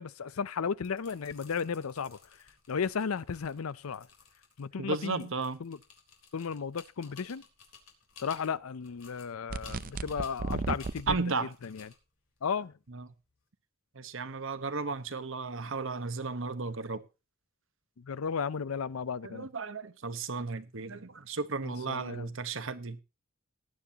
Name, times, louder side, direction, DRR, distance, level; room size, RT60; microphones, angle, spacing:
voice 1, 0.0-2.2 2.7-4.1 4.6-5.3 5.6-5.8 6.3-7.4 8.2-11.9 12.4-12.7 18.0-19.5 21.6-22.3, left 6 dB, 90° left, 0.5 m, -34 dB
sound 1, 0.7-13.4, left 6 dB, 65° left, 3.8 m, -57 dB
voice 2, 4.8-5.6 11.1-11.5 12.9-13.1 13.9-17.0 19.2-23.0, right 4 dB, 65° right, 1.1 m, -34 dB
sound 2, 9.5-11.2, right 3 dB, 40° right, 0.5 m, -34 dB
19.0 x 9.4 x 2.9 m
head